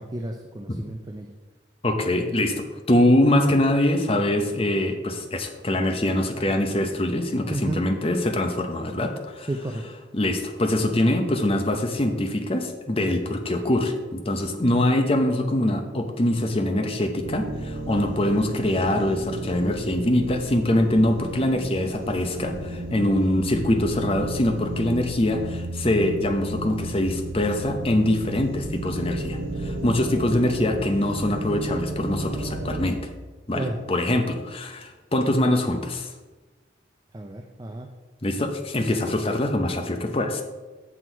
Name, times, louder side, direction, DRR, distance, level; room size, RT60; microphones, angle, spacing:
voice 1, 0.0-1.3 7.5-7.9 9.5-9.8 18.3-18.4 28.3-28.4 33.5-33.8 37.1-37.9, right 1 dB, 20° right, 4 dB, 0.4 m, -32 dB
voice 2, 1.8-9.5 10.1-33.0 33.5-36.1 38.2-40.4, left 1 dB, 30° left, 5 dB, 0.8 m, -23 dB
sound 1, 17.2-32.9, right 1 dB, 85° right, 0.9 m, -33 dB
8.1 x 6.0 x 4.6 m, 1.3 s
head